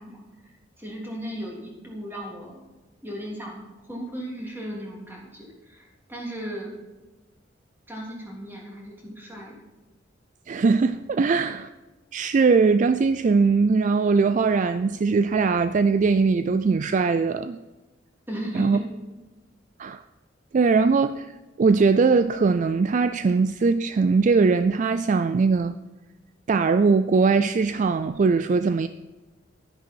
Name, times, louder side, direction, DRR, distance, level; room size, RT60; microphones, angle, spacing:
voice 1, 0.0-2.6 3.0-6.7 7.9-9.5 18.3-18.9, equal, 10° right, 3.4 m, -36 dB
voice 2, 10.5-11.7 12.1-17.6 18.5-18.8 19.8-20.0 20.5-21.3 21.6-25.8 26.5-28.9, right 4 dB, 40° right, 0.3 m, -21 dB
12.0 x 10.0 x 4.6 m
head